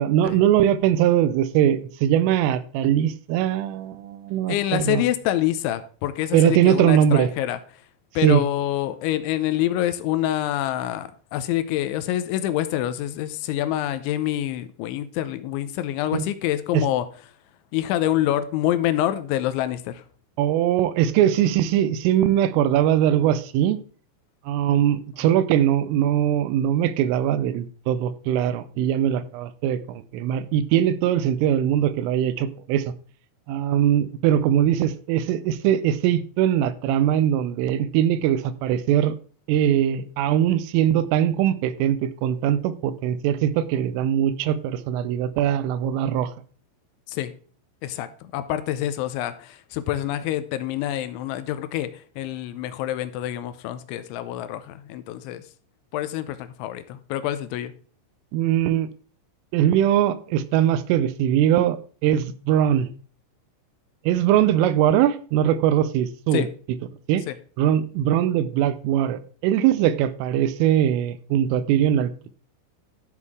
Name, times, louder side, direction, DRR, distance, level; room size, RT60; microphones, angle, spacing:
voice 1, 0.0-5.0 6.3-7.3 8.2-8.4 16.1-16.2 16.7-16.8 20.4-23.8 24.5-32.9 33.5-39.2 39.5-46.3 58.3-58.9 59.5-62.9 64.1-66.5 67.1-67.2 67.6-72.3, right 10 dB, 85° right, 14 dB, 3.3 m, -21 dB
voice 2, 4.5-7.9 8.2-17.1 17.7-20.0 47.1-47.3 47.8-55.4 55.9-57.7 66.3-66.5 67.3-67.4, left 13 dB, 80° left, 12 dB, 2.9 m, -26 dB
12.5 x 6.5 x 3.5 m, 0.42 s
omnidirectional pair, 5.7 m